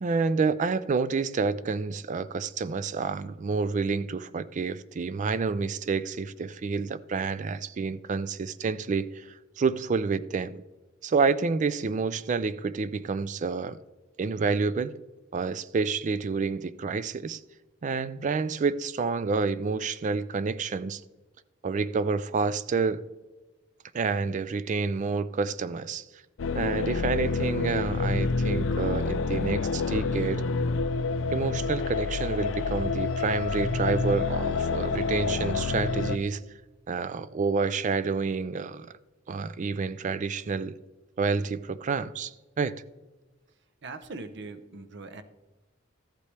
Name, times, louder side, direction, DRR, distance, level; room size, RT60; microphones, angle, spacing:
voice 1, 0.0-9.3 9.6-10.6 11.0-13.8 14.2-15.0 15.3-17.4 17.8-21.0 21.6-23.0 23.9-26.0 26.6-30.4 31.3-36.4 36.9-38.9 39.3-40.8 41.2-42.8, right 4 dB, 40° right, 0.4 m, -28 dB
sound 1, 26.4-36.2, left 4 dB, 70° left, 0.4 m, -28 dB
voice 2, 43.8-45.2, right 3 dB, 60° right, 0.8 m, -41 dB
13.5 x 8.3 x 3.3 m
head